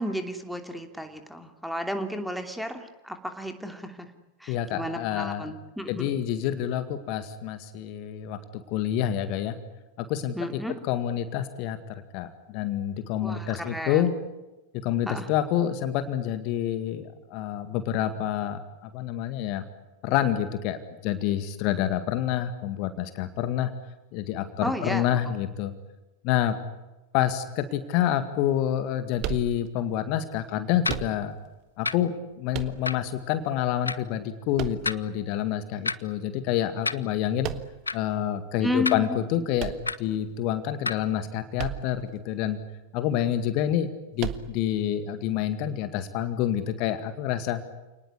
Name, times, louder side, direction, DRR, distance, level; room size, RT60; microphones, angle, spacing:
voice 1, 0.0-4.1 4.4-6.1 10.3-10.7 13.2-14.0 15.0-15.3 24.6-25.1 38.6-39.2, left 1 dB, ahead, 6 dB, 2.9 m, -32 dB
voice 2, 4.5-5.5 5.9-9.6 10.0-14.1 14.8-19.6 20.0-23.7 24.1-25.7 26.2-26.6 27.1-31.3 31.8-37.5 37.9-42.6 42.9-47.6, left 11 dB, 45° left, 10 dB, 2.0 m, -28 dB
sound 1, 29.2-30.0 30.8-31.6 32.5-33.2 34.5-35.4 37.4-38.0 39.6-40.4 41.6-42.1 42.4-42.5 44.2-44.8, right 12 dB, 40° right, 1.6 m, -35 dB
sound 2, 30.9-31.0 31.9-32.0 32.9-33.0 33.9-34.0 34.9-35.0 35.9-36.0 36.9-37.0 37.9-38.0 38.9-39.0 39.9-40.0 40.9-41.0, left 3 dB, 80° left, 0.8 m, -28 dB
29.0 x 19.5 x 9.9 m, 1.1 s
figure-of-eight pair, 90°, 0 cm